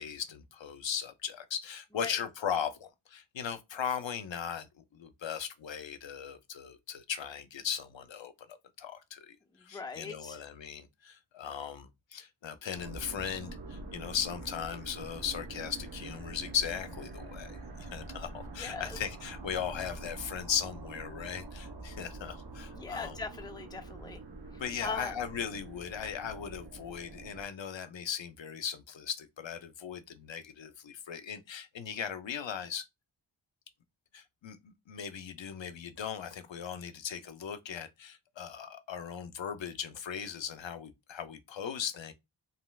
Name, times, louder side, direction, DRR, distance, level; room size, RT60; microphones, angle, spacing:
voice 1, 0.0-8.3 8.8-23.2 24.6-32.8 34.1-42.1, left 8 dB, 70° left, 0.6 m, -38 dB
voice 2, 9.7-10.4 18.6-19.0 22.8-24.2 24.8-25.2, left 4 dB, 10° left, 0.5 m, -39 dB
sound 1, 12.7-27.4, right 3 dB, 50° right, 0.8 m, -45 dB
3.1 x 2.7 x 2.3 m
wide cardioid pair, 45°, 48 cm